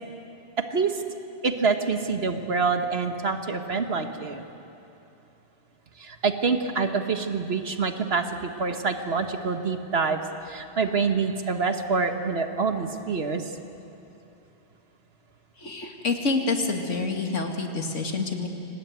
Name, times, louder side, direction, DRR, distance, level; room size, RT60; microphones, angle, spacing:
voice 1, 1.4-4.4 6.0-13.5, right 4 dB, 55° right, 6 dB, 1.6 m, -26 dB
voice 2, 15.6-18.5, left 3 dB, 80° left, 3 dB, 2.5 m, -27 dB
24.5 x 18.5 x 9.4 m, 2.8 s
omnidirectional pair, 1.2 m